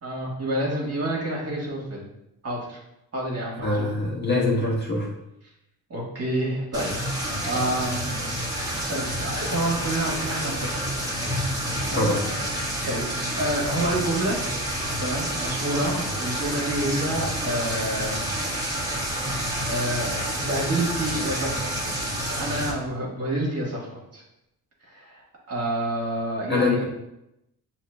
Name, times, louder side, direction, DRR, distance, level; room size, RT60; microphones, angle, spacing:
voice 1, 0.0-2.0 2.4-2.8 3.1-4.1 5.9-6.9 7.4-10.9 11.8-12.1 12.4-14.4 15.0-18.3 19.4-24.2 24.8-26.8, right 1 dB, 40° right, -3 dB, 1.5 m, -29 dB
voice 2, 3.6-5.1 11.9-12.3 26.5-26.8, left 2 dB, 25° left, -4 dB, 1.4 m, -23 dB
sound 1, 6.7-22.7, equal, 10° right, 1.3 m, -29 dB
6.3 x 2.9 x 2.2 m, 0.86 s
cardioid pair, 80°, 38 cm